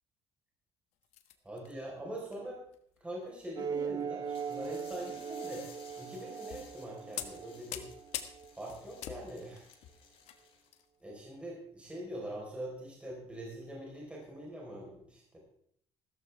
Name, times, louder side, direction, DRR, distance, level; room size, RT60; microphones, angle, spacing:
sound 1, 1.0-1.7 2.2-2.4 2.7-3.0 4.0-4.3 4.9-5.1 5.9-6.0 6.5-6.8 7.2-10.9 11.1-11.3 11.9-12.0, left 11 dB, 85° left, 1.3 m, -44 dB
voice 1, 1.4-2.6 3.0-7.8 8.6-9.7 11.0-15.4, right 1 dB, 10° right, -3 dB, 4.3 m, -43 dB
sound 2, 3.6-8.5, right 6 dB, 35° right, 0.5 m, -40 dB
sound 3, 4.3-10.8, left 6 dB, 60° left, 4.7 m, -58 dB
15.5 x 13.5 x 3.5 m, 0.65 s
cardioid pair, 145°, 11 cm